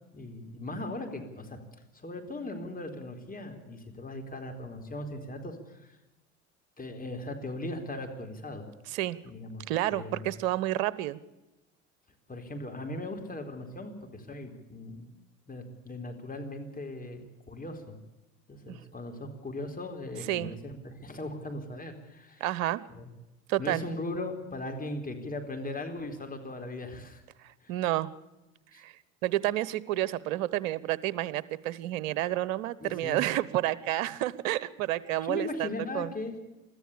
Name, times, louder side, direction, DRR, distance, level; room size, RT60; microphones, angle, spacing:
voice 1, 0.1-1.6 1.9-6.0 6.8-8.6 9.2-9.6 9.9-10.3 12.3-15.1 15.5-18.0 18.5-22.4 22.9-23.1 23.6-27.2 27.6-27.7 28.7-28.8 32.8-33.2 35.2-36.4, left 2 dB, 20° left, 4 dB, 4.3 m, -38 dB
voice 2, 9.7-11.2 18.7-18.8 20.3-20.5 22.4-22.8 23.5-23.8 27.7-28.1 28.7-28.9 29.2-35.7 35.9-36.1, right 14 dB, 70° right, 19 dB, 1.1 m, -30 dB
23.5 x 14.5 x 8.5 m, 0.99 s
hypercardioid pair, 65°, 40 cm